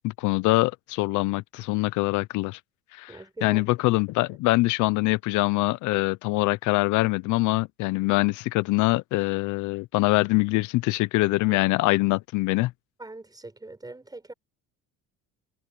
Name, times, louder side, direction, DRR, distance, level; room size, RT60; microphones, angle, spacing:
voice 1, 0.0-2.6 2.9-12.7, left 22 dB, 70° left, 0.7 m, -24 dB
voice 2, 3.1-3.7 11.4-11.6 13.0-14.3, right 2 dB, 10° right, 4.8 m, -42 dB
supercardioid pair, 95°, 31 cm